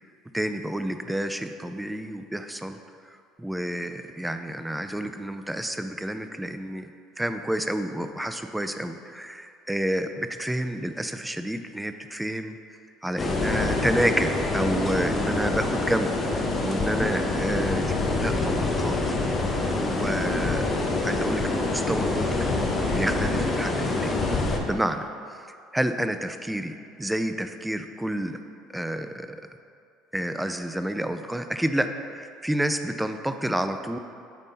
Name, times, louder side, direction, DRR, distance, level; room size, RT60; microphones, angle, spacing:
voice 1, 0.3-2.8 3.4-6.9 7.2-12.6 13.0-19.2 19.8-20.6 21.0-22.3 22.9-24.1 24.6-25.0 25.4-25.5 25.7-28.4 28.7-29.3 30.1-34.0, right 1 dB, 5° right, 8 dB, 0.5 m, -29 dB
sound 1, 13.2-24.6, left 2 dB, 35° left, 1.0 m, -26 dB
9.1 x 3.6 x 4.1 m, 2.4 s
hypercardioid pair, 65°, 0 cm